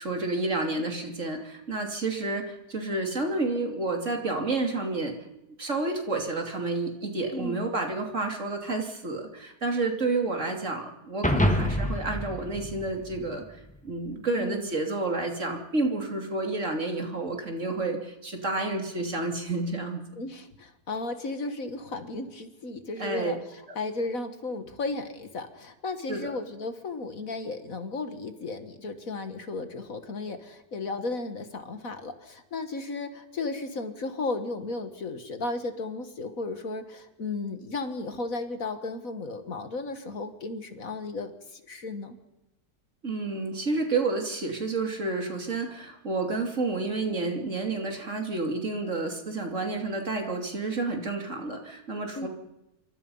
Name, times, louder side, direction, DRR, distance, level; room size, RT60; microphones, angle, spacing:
voice 1, 0.0-5.1 5.6-20.0 23.0-23.3 26.1-26.3 43.0-52.3, right 3 dB, 45° right, 3 dB, 3.1 m, -30 dB
voice 2, 7.3-7.7 14.4-14.7 20.2-42.2 52.2-52.3, left 3 dB, 55° left, 8 dB, 2.0 m, -34 dB
sound 1, 11.2-13.7, left 1 dB, 5° left, 1.6 m, -27 dB
27.5 x 24.0 x 5.6 m, 0.92 s
omnidirectional pair, 1.7 m